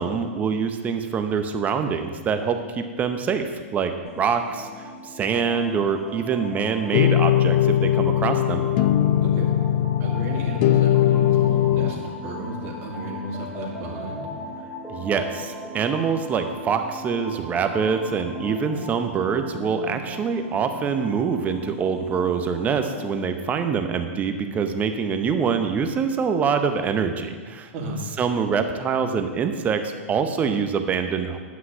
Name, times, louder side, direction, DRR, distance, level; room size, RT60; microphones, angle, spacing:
voice 1, 0.0-3.4 3.7-3.9 4.2-4.7 5.1-8.6 14.9-27.7 28.2-31.4, right 6 dB, 20° right, 7 dB, 0.8 m, -25 dB
sound 1, 4.0-23.2, equal, 10° left, 2.4 m, -38 dB
sound 2, 6.9-11.9, left 12 dB, 45° left, 0.5 m, -20 dB
voice 2, 10.0-14.2 27.7-28.0, right 1 dB, 40° right, -2 dB, 2.5 m, -33 dB
9.9 x 5.8 x 6.2 m, 1.5 s
hypercardioid pair, 120°, 7 cm